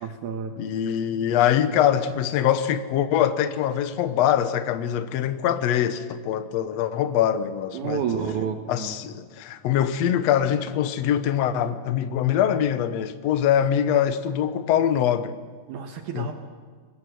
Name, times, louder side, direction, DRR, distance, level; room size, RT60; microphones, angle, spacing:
voice 1, 0.0-0.6 7.7-9.0 15.7-16.3, right 7 dB, 65° right, 6 dB, 2.2 m, -30 dB
voice 2, 0.6-8.0 8.7-15.3 16.1-16.3, left 10 dB, 70° left, 12 dB, 1.6 m, -23 dB
22.0 x 21.0 x 7.8 m, 1.5 s
omnidirectional pair, 4.2 m